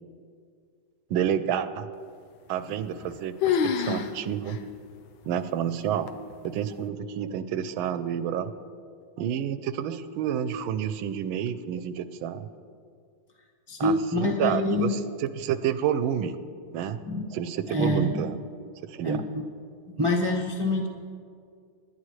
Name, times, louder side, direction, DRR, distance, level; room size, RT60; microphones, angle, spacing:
voice 1, 1.1-1.9 2.5-4.6 5.2-6.1 6.4-8.5 9.2-12.5 13.8-16.4 16.7-17.0 17.3-18.4 18.8-19.2, right 9 dB, 80° right, 12 dB, 1.5 m, -29 dB
sound 1, 2.6-3.1 3.4-4.1 4.5-4.6 5.2-5.3 6.1-6.5, left 7 dB, 75° left, 1.5 m, -26 dB
voice 2, 13.7-14.9 17.0-17.2 17.7-18.4 19.0-19.4 20.0-20.9, left 1 dB, 25° right, 0 dB, 0.7 m, -26 dB
26.0 x 11.5 x 3.2 m, 2.2 s
omnidirectional pair, 2.3 m